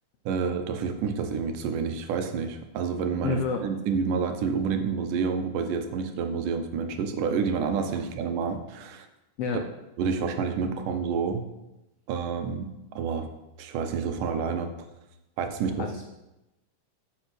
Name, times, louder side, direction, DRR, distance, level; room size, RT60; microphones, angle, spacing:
voice 1, 0.3-9.1 9.5-9.6 10.0-11.5 12.1-12.7 12.9-13.3 13.6-14.7 15.4-16.0, right 5 dB, 85° right, 7 dB, 2.4 m, -29 dB
voice 2, 3.2-3.6 9.4-9.6 15.8-16.0, left 5 dB, 85° left, 4 dB, 1.3 m, -28 dB
9.8 x 5.5 x 6.0 m, 0.96 s
omnidirectional pair, 3.7 m